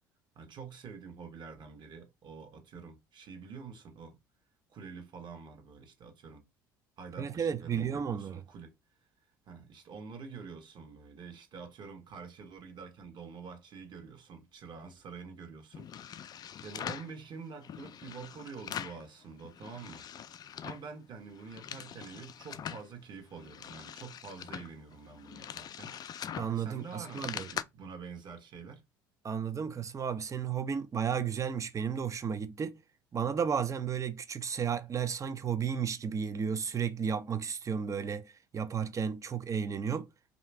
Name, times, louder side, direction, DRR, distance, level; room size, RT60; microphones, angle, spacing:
voice 1, 0.3-4.2 4.7-6.4 7.0-8.7 9.4-20.1 20.4-26.0 26.6-28.8, right 5 dB, 45° right, 1.3 m, -47 dB
voice 2, 7.2-8.4 26.4-27.5 29.2-32.8 33.1-40.1, right 7 dB, 30° right, 0.6 m, -33 dB
sound 1, 15.7-17.1 17.6-19.1 19.4-20.9 21.3-22.9 23.3-27.6, left 9 dB, 40° left, 0.4 m, -43 dB
3.2 x 2.8 x 4.5 m
hypercardioid pair, 65°, 11 cm